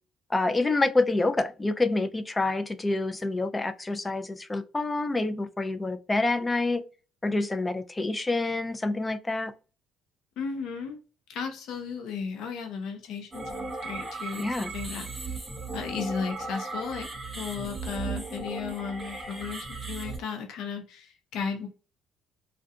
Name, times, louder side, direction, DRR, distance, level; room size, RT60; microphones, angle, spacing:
voice 1, 0.3-6.8 7.2-9.5 14.4-14.7, left 2 dB, 20° left, 0.4 m, -27 dB
voice 2, 10.4-11.0 11.3-15.4 15.7-17.1 17.4-21.7, left 6 dB, 70° left, 0.6 m, -35 dB
sound 1, 13.3-20.2, right 3 dB, 20° right, 0.9 m, -36 dB
2.3 x 2.2 x 2.6 m
supercardioid pair, 80°, 0 cm